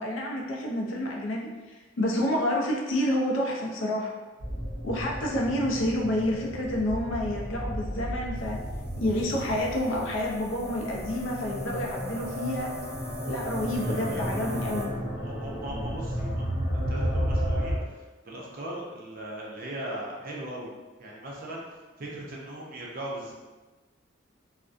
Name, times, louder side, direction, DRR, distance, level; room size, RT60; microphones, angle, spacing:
voice 1, 0.0-4.1 4.8-8.6 9.0-12.7 13.2-15.0, left 1 dB, 70° left, -1 dB, 0.5 m, -29 dB
sound 1, 4.4-17.8, equal, 45° left, 0.8 m, -33 dB
sound 2, 8.4-14.9, left 2 dB, ahead, 0.5 m, -43 dB
voice 2, 13.7-14.5 15.2-16.5 16.9-20.7 21.0-21.6 22.0-23.3, right 1 dB, 45° right, -3 dB, 0.5 m, -39 dB
2.4 x 2.1 x 2.4 m, 1.2 s
head